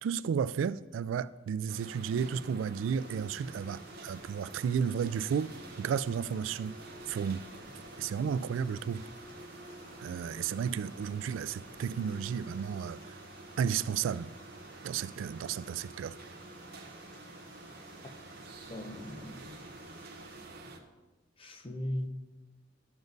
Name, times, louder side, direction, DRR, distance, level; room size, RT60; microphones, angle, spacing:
voice 1, 0.0-6.7 7.1-7.4 8.0-9.0 10.0-13.0 13.6-14.3 14.8-16.1, right 7 dB, 85° right, 0.3 m, -33 dB
sound 1, 1.7-20.8, right 2 dB, 55° right, 0.9 m, -48 dB
sound 2, 2.9-20.4, left 2 dB, 70° left, 3.0 m, -59 dB
sound 3, 4.0-12.0, equal, 10° left, 2.7 m, -60 dB
voice 2, 18.7-19.5 21.4-22.1, left 1 dB, 30° left, 0.8 m, -38 dB
12.0 x 7.1 x 4.0 m
head